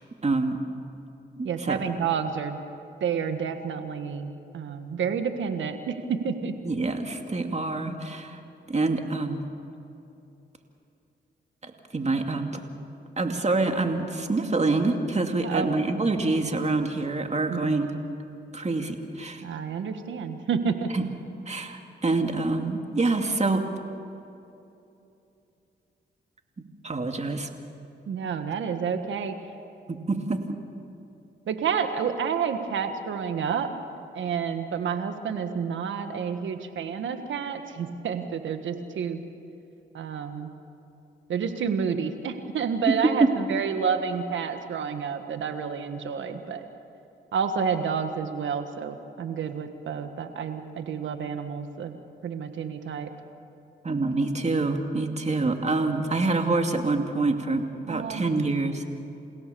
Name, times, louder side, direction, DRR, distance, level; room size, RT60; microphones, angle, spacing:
voice 1, 0.2-0.6 1.4-1.8 6.6-8.4 8.7-9.4 11.6-12.6 13.2-17.9 18.5-19.4 20.9-21.1 21.5-23.6 26.8-27.5 29.9-30.6 53.8-57.6 57.9-58.8, right 3 dB, 35° right, 4 dB, 2.5 m, -26 dB
voice 2, 1.4-2.6 3.0-6.5 15.4-15.7 17.5-17.7 19.4-20.9 28.1-29.4 31.5-33.7 34.2-39.2 39.9-40.5 41.3-46.7 47.3-53.1 57.8-58.4, right 6 dB, 85° right, 8 dB, 1.6 m, -29 dB
28.5 x 17.0 x 7.0 m, 2.8 s
cardioid pair, 55°, 19 cm